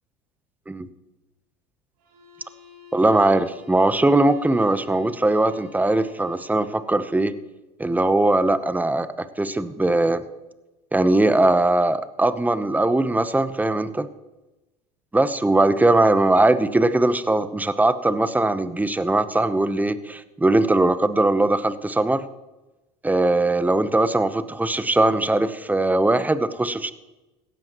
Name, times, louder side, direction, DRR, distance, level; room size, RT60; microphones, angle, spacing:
sound 1, 2.0-6.9, left 6 dB, 85° right, 4.5 m, -49 dB
voice 1, 2.9-7.3 7.8-9.1 9.4-10.2 10.9-14.1 15.1-22.2 23.0-26.9, right 2 dB, 10° right, 13 dB, 0.9 m, -20 dB
17.5 x 13.5 x 3.1 m, 1.1 s
hypercardioid pair, 85°, 19 cm